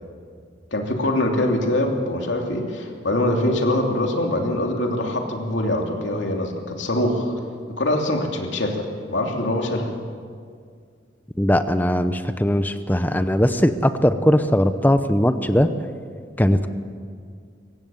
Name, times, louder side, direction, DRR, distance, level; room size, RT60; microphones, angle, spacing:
voice 1, 0.7-7.3 7.8-9.9, left 1 dB, 90° left, 1 dB, 2.9 m, -23 dB
voice 2, 11.4-15.7 16.4-16.7, equal, 10° left, 10 dB, 0.7 m, -19 dB
23.5 x 18.0 x 7.1 m, 2.1 s
head